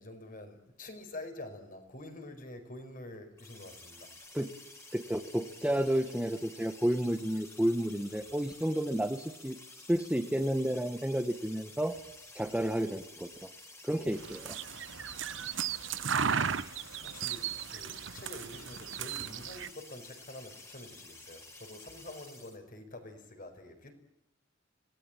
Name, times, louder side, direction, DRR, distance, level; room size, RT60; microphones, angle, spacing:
voice 1, 0.0-4.1 17.0-23.9, left 1 dB, 45° left, 6 dB, 4.9 m, -47 dB
sound 1, 3.4-22.6, left 2 dB, 15° left, 3.8 m, -52 dB
voice 2, 4.9-9.6 9.9-11.9 12.3-13.5 13.8-14.5, equal, 5° right, 7 dB, 1.1 m, -31 dB
sound 2, 14.1-19.7, right 7 dB, 75° right, 0.9 m, -35 dB
26.5 x 18.5 x 9.0 m, 0.93 s
head